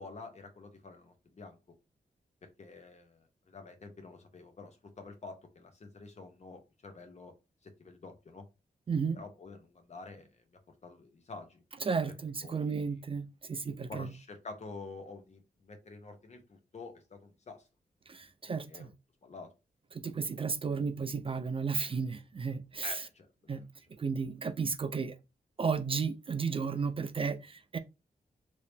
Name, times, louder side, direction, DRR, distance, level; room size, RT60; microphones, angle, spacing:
voice 1, 0.0-1.6 2.4-7.3 7.6-8.5 9.1-10.3 10.8-11.6 12.4-13.0 13.9-17.6 18.6-18.9 19.2-19.5 22.8-23.6, left 3 dB, 45° left, 0.9 m, -48 dB
voice 2, 8.9-9.2 11.8-14.1 18.1-18.9 20.0-23.0 23.5-23.6 24.0-25.2 25.6-27.8, right 5 dB, 35° right, 0.3 m, -33 dB
3.1 x 2.7 x 3.3 m
wide cardioid pair, 120°, 16 cm